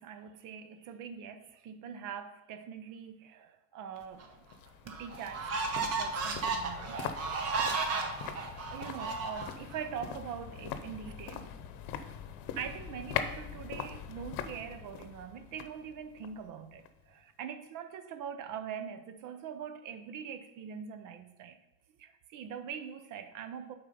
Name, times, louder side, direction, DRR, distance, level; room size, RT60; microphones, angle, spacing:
voice 1, 0.0-4.3 4.8-7.0 8.7-11.5 12.6-21.6 22.0-23.7, right 8 dB, 60° right, 9 dB, 0.7 m, -43 dB
sound 1, 4.0-17.1 17.4-17.5, left 8 dB, 80° left, 0.8 m, -42 dB
sound 2, 4.2-4.3 4.9-9.8, right 4 dB, 45° right, 1.1 m, -34 dB
8.3 x 4.5 x 5.4 m, 0.98 s
cardioid pair, 150°, 35 cm